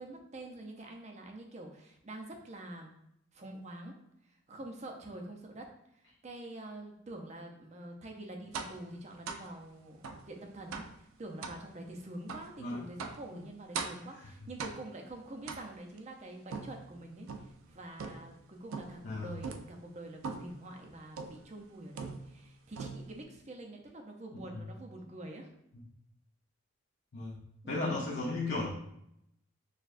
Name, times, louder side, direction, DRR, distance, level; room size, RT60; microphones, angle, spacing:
voice 1, 0.0-2.9 3.3-4.0 4.3-25.5 27.6-28.0, right 1 dB, 35° right, 2 dB, 0.5 m, -46 dB
sound 1, 8.5-8.8 9.3-9.5 10.0-10.3 10.7-11.0 11.4-11.6 12.3-12.5 13.0-13.3 13.7-14.1 14.6-15.0 15.5-16.0 16.5-17.6 18.0-18.4 18.7-19.1 19.4-19.7 20.2-20.6 21.2-21.5 22.0-22.5 22.8-23.2, right 5 dB, 85° right, 0.4 m, -41 dB
voice 2, 19.0-19.3 27.1-27.4 27.7-28.7, left 2 dB, 55° left, -7 dB, 0.6 m, -34 dB
6.3 x 2.3 x 2.5 m, 0.77 s
head